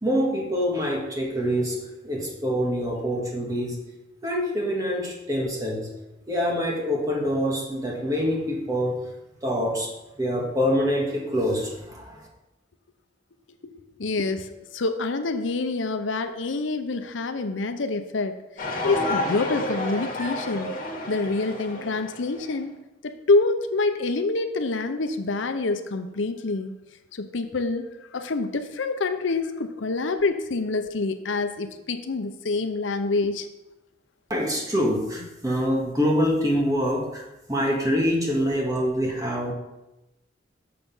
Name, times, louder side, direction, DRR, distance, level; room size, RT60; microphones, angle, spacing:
voice 1, 0.0-3.8 4.2-5.9 6.3-9.1 9.4-9.9 10.2-12.3 34.3-37.2 37.5-39.5, equal, 20° right, -2 dB, 1.9 m, -25 dB
voice 2, 14.0-14.5 14.7-18.4 18.8-20.7 21.1-22.7 23.0-26.8 27.1-33.5, left 3 dB, 85° left, 8 dB, 0.7 m, -26 dB
sound 1, 18.6-22.5, left 1 dB, 50° left, 2.0 m, -30 dB
6.9 x 6.7 x 5.4 m, 0.96 s
head